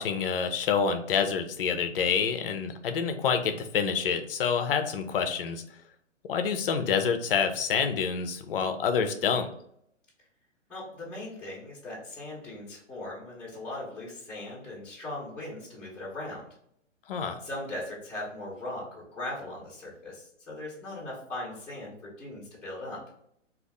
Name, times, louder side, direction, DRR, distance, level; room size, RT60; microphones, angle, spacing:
voice 1, 0.0-5.6 6.2-9.5 17.1-17.4, left 6 dB, 50° left, 7 dB, 0.5 m, -27 dB
voice 2, 10.7-16.5 17.4-23.0, left 1 dB, 5° left, -7 dB, 0.7 m, -39 dB
2.5 x 2.4 x 3.3 m, 0.71 s
hypercardioid pair, 130°, 38 cm